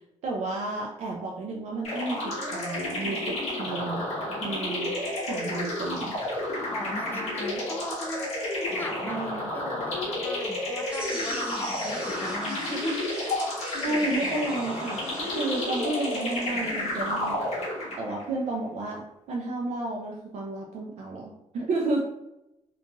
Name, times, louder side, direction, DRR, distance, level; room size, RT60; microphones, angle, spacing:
voice 1, 0.2-4.0 4.4-4.9 5.2-6.2 9.0-9.5 13.8-17.5 18.0-22.0, right 2 dB, 75° right, -1 dB, 0.4 m, -32 dB
sound 1, 1.8-18.2, left 1 dB, 70° left, 1.0 m, -31 dB
voice 2, 6.7-13.1, left 1 dB, 20° left, 3 dB, 0.3 m, -37 dB
sound 2, 10.9-17.3, equal, 10° right, 0.7 m, -41 dB
2.8 x 2.6 x 2.3 m, 0.89 s
wide cardioid pair, 180°, 12 cm